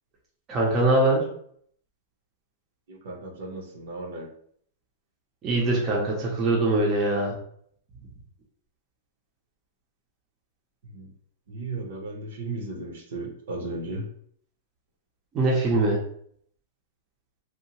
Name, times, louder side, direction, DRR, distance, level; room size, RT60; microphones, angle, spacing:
voice 1, 0.5-1.3 5.4-7.4 15.3-16.0, right 2 dB, 25° right, -3 dB, 0.6 m, -22 dB
voice 2, 2.9-4.3 10.9-11.1 11.5-14.0, right 2 dB, 70° right, 1 dB, 0.7 m, -35 dB
2.7 x 2.1 x 2.9 m, 0.64 s
supercardioid pair, 160°, 0 cm